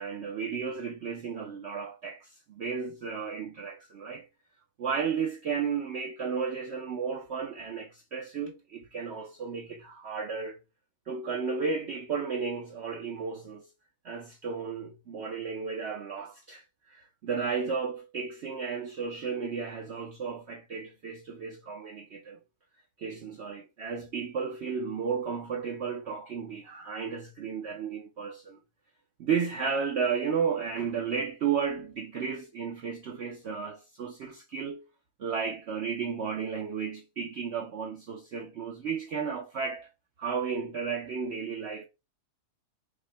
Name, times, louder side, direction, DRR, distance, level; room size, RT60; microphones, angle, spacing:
voice 1, 0.0-4.3 4.8-10.6 11.1-13.7 14.0-22.4 23.0-28.6 29.2-34.8 35.2-39.9 40.2-41.8, right 6 dB, 65° right, 0.7 m, -33 dB
5.5 x 2.1 x 3.2 m
omnidirectional pair, 1.7 m